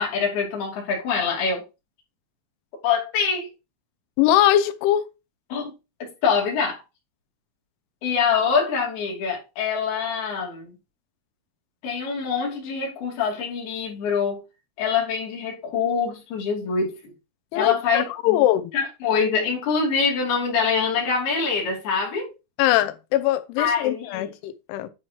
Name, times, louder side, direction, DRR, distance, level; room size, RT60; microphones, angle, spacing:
voice 1, 0.0-1.6 2.8-3.5 5.5-5.7 6.2-6.8 8.0-10.7 11.8-14.4 14.8-17.0 17.5-18.5 18.7-22.3 23.6-24.3, left 5 dB, 55° left, 4.0 m, -24 dB
voice 2, 4.2-5.0 17.5-18.7 22.6-24.9, left 13 dB, 80° left, 2.9 m, -21 dB
10.5 x 4.5 x 3.1 m
omnidirectional pair, 5.9 m